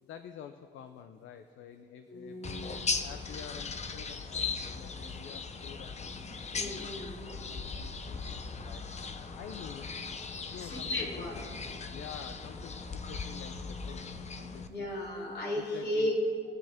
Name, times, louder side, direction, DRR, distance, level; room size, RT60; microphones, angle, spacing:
voice 1, 0.0-2.7 3.0-6.0 6.6-7.0 7.3-8.2 8.5-9.1 9.4-11.3 11.9-14.9 15.7-16.1, left 8 dB, 75° left, 8 dB, 0.6 m, -48 dB
voice 2, 2.1-3.0 6.5-7.2 10.5-11.4 14.7-16.2, left 1 dB, 60° left, -2 dB, 3.2 m, -35 dB
sound 1, 2.4-14.7, left 4 dB, 35° left, 0.8 m, -38 dB
22.5 x 7.7 x 3.6 m, 2.4 s
cardioid pair, 90°, 20 cm